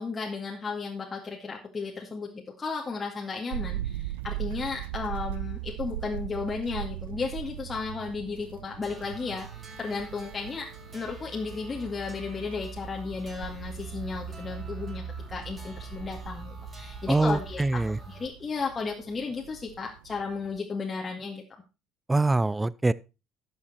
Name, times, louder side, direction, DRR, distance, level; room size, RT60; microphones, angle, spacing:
voice 1, 0.0-9.5 9.8-10.7 10.9-15.0 15.3-21.4, left 4 dB, 30° left, 2.1 m, -34 dB
sound 1, 3.5-20.6, right 14 dB, 80° right, 0.4 m, -40 dB
sound 2, 8.8-18.3, right 4 dB, 30° right, 6.6 m, -42 dB
voice 2, 17.1-18.0 22.1-22.9, right 2 dB, 15° right, 0.6 m, -24 dB
12.0 x 7.4 x 4.3 m
hypercardioid pair, 65°, 0 cm